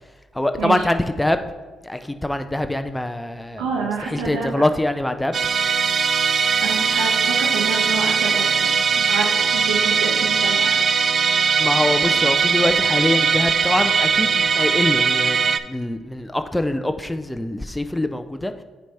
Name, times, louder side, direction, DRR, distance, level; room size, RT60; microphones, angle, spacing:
voice 1, 0.3-1.4 1.8-3.6 4.0-5.4 11.6-18.5, left 1 dB, 10° left, 8 dB, 0.4 m, -24 dB
voice 2, 3.6-4.6 6.6-10.8, right 5 dB, 85° right, -2 dB, 1.2 m, -28 dB
Musical instrument, 5.3-15.6, right 5 dB, 50° right, 0.3 m, -20 dB
8.9 x 3.4 x 4.2 m, 1.3 s
hypercardioid pair, 50°, 0 cm